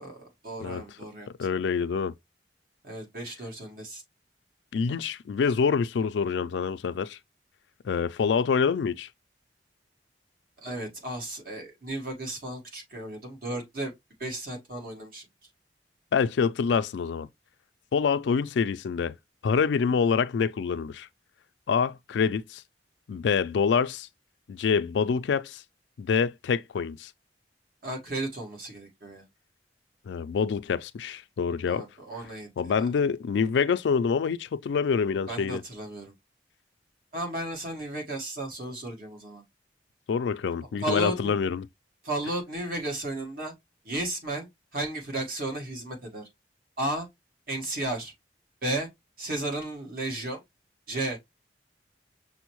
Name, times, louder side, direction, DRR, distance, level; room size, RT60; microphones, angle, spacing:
voice 1, 0.0-1.3 2.8-4.0 10.6-13.9 14.2-15.2 27.8-29.3 31.7-32.5 35.3-36.1 37.1-39.4 40.8-41.3 42.0-43.5 43.8-44.5 44.7-46.2 46.8-47.1 47.5-48.1 48.6-48.9 49.2-50.4 50.9-51.2, right 1 dB, 50° right, 1.4 m, -34 dB
voice 2, 1.4-2.1 4.7-7.2 7.8-9.1 16.1-17.3 17.9-19.1 19.4-21.1 21.7-22.6 23.1-24.1 24.5-25.6 26.0-27.1 30.1-31.8 32.6-35.6 40.1-41.7, left 6 dB, 80° left, 0.3 m, -26 dB
6.1 x 2.1 x 3.0 m
head